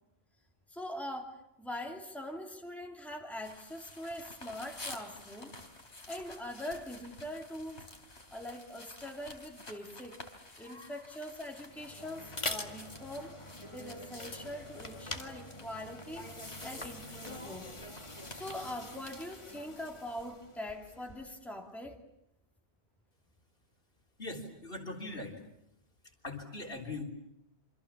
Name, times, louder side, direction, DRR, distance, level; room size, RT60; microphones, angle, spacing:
voice 1, 0.7-5.5 6.1-7.9 8.3-10.2 10.6-13.4 13.7-16.3 16.6-17.8 18.3-22.0, left 1 dB, ahead, 2 dB, 2.6 m, -43 dB
sound 1, 3.4-19.6, left 2 dB, 90° left, 4.1 m, -51 dB
voice 2, 10.6-10.9 24.2-25.4 26.2-27.0, left 2 dB, 60° left, 1 dB, 3.9 m, -41 dB
sound 2, 11.6-21.4, left 1 dB, 30° left, 2.0 m, -44 dB
28.0 x 25.5 x 7.3 m, 0.79 s
omnidirectional pair, 1.1 m